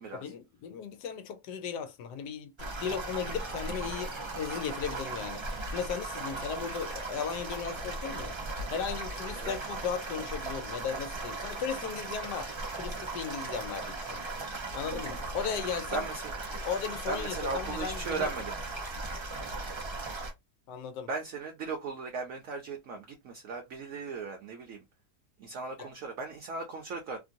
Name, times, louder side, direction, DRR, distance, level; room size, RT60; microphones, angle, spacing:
voice 1, 0.2-5.4 5.7-8.4 8.7-14.3 14.7-16.0 16.6-18.3 20.7-21.1 25.8-25.9, left 7 dB, 80° left, 1.2 m, -36 dB
sound 1, 2.6-20.3, right 2 dB, 50° right, 0.3 m, -37 dB
voice 2, 14.9-15.2 15.9-16.3 17.1-18.6 21.1-24.8 25.4-27.2, right 4 dB, 65° right, 0.9 m, -37 dB
2.9 x 2.6 x 2.6 m
omnidirectional pair, 1.8 m